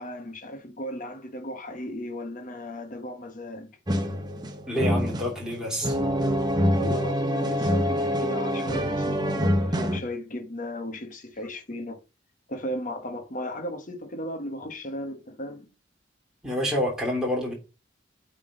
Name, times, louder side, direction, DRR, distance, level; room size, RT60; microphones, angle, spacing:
voice 1, 0.0-3.8 6.8-12.0 12.5-15.7, left 1 dB, 40° left, 1.0 m, -36 dB
sound 1, 3.9-10.0, equal, 20° right, 0.9 m, -25 dB
voice 2, 4.7-5.9 16.4-17.5, equal, 5° right, 2.9 m, -28 dB
8.7 x 3.7 x 5.2 m
head